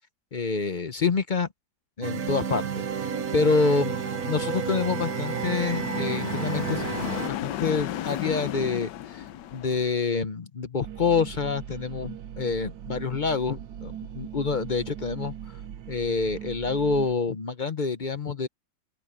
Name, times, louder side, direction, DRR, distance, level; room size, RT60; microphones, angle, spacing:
voice 1, 0.3-1.5 2.0-4.0 4.3-6.9 7.1-9.3 9.5-15.3 15.9-18.5, left 4 dB, 50° left, 0.5 m, -27 dB
sound 1, 2.0-7.3, right 7 dB, 55° right, 1.4 m, -31 dB
sound 2, 2.6-10.0, left 12 dB, 70° left, 1.3 m, -35 dB
sound 3, 10.8-17.1, right 10 dB, 70° right, 1.5 m, -40 dB
open air
omnidirectional pair, 2.1 m